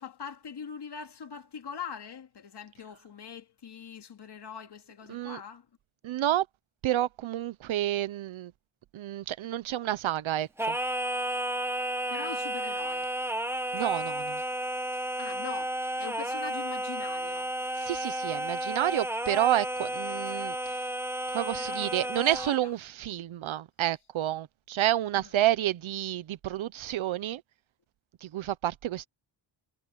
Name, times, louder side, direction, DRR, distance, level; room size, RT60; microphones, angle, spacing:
voice 1, 0.0-5.7 12.1-13.1 14.9-17.5 20.1-20.2 21.6-22.7 25.1-25.3, left 7 dB, 60° left, 2.5 m, -43 dB
voice 2, 5.1-5.4 6.0-6.5 6.8-8.5 8.9-10.8 13.7-14.4 17.8-20.8 21.3-27.4 28.2-29.1, right 13 dB, 85° right, 0.8 m, -29 dB
Singing, 10.6-22.7, right 1 dB, 5° right, 1.3 m, -32 dB
wide cardioid pair, 120°, 46 cm